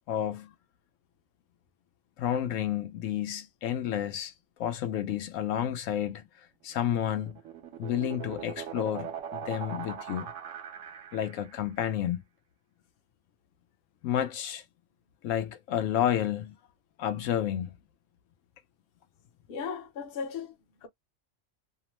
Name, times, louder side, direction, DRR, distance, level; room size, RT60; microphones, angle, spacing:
voice 1, 0.1-0.5 2.2-4.3 4.6-6.3 6.6-7.4 7.8-10.3 11.1-12.2 14.0-14.6 15.2-16.6 17.0-17.7, left 10 dB, 80° left, 0.9 m, -30 dB
sound 1, 6.9-11.6, right 9 dB, 70° right, 1.0 m, -41 dB
voice 2, 19.5-20.9, left 6 dB, 55° left, 0.8 m, -37 dB
2.9 x 2.0 x 2.9 m
omnidirectional pair, 1.4 m